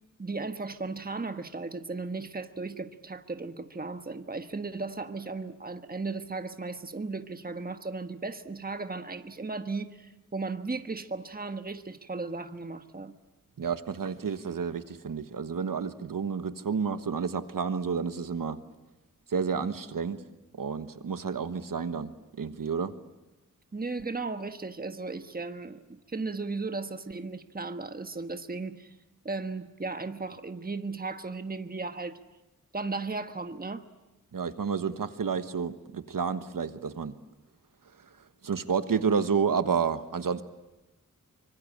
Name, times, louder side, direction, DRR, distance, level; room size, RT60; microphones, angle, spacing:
voice 1, 0.2-13.1 23.7-28.9 29.2-32.2 32.7-33.9, right 3 dB, 30° right, 1.3 m, -36 dB
voice 2, 13.6-18.6 19.3-20.2 20.5-22.1 22.4-22.9 34.3-37.1 38.4-40.4, right 6 dB, 85° right, 1.4 m, -30 dB
25.0 x 24.0 x 8.7 m
wide cardioid pair, 80°, 32 cm